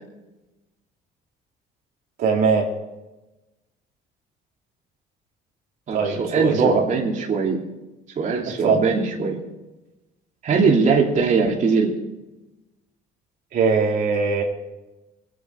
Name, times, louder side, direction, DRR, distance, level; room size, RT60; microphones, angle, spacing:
voice 1, 2.2-2.8 5.9-6.9 8.4-8.8 13.5-14.4, right 5 dB, 70° right, 0 dB, 2.8 m, -20 dB
voice 2, 5.9-7.6 8.2-9.4 10.4-12.0, right 4 dB, 50° right, -1 dB, 2.9 m, -21 dB
24.5 x 9.4 x 4.7 m, 1.0 s
cardioid pair, 110°, 17 cm